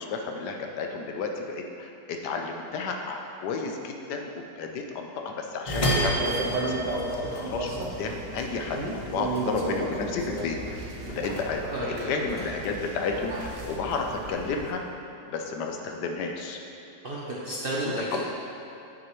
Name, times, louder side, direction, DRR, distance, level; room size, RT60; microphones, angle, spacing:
voice 1, 0.0-14.8 15.3-16.6 17.8-18.2, left 4 dB, 75° left, 3 dB, 1.2 m, -32 dB
sound 1, 5.7-8.1 8.4-10.1 10.4-11.8 12.1-13.3, equal, 40° left, 0.5 m, -30 dB
sound 2, 6.2-14.7, right 2 dB, 80° right, 1.4 m, -34 dB
voice 2, 11.6-12.1 17.0-18.2, right 1 dB, 50° right, -6 dB, 0.7 m, -32 dB
8.2 x 6.3 x 3.1 m, 2.8 s
omnidirectional pair, 1.8 m